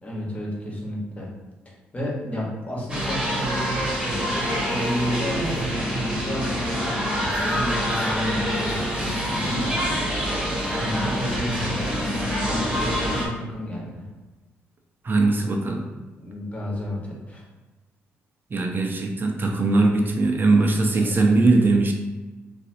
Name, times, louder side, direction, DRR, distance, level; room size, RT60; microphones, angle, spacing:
voice 1, 0.0-1.3 1.6-10.0 10.4-14.1 16.2-17.4 21.0-21.2, equal, 25° left, -4 dB, 1.2 m, -32 dB
sound 1, 2.9-13.3, equal, 15° right, 1.2 m, -26 dB
voice 2, 15.0-15.8 18.5-21.9, right 3 dB, 35° right, 1 dB, 0.6 m, -20 dB
3.1 x 2.6 x 2.7 m, 1.2 s
hypercardioid pair, 45°, 6 cm